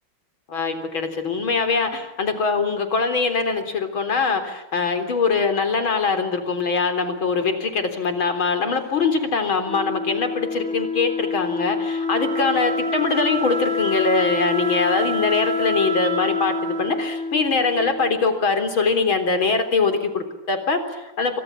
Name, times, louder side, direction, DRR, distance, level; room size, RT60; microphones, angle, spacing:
voice 1, 0.5-21.4, left 4 dB, 80° left, 8 dB, 4.6 m, -22 dB
Wind instrument woodwind instrument, 9.6-18.4, left 3 dB, 65° right, 3.7 m, -26 dB
29.5 x 25.5 x 7.4 m, 0.95 s
omnidirectional pair, 2.2 m